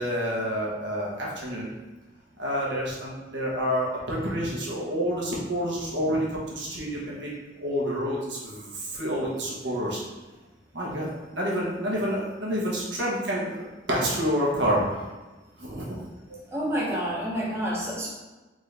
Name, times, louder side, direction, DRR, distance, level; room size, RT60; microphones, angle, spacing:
voice 1, 0.0-1.7 2.4-7.3 7.6-10.0 10.7-15.1 15.6-16.0, equal, 75° right, -4 dB, 1.2 m, -28 dB
voice 2, 16.5-18.1, equal, 15° right, -6 dB, 0.8 m, -28 dB
3.9 x 3.8 x 3.4 m, 1.2 s
head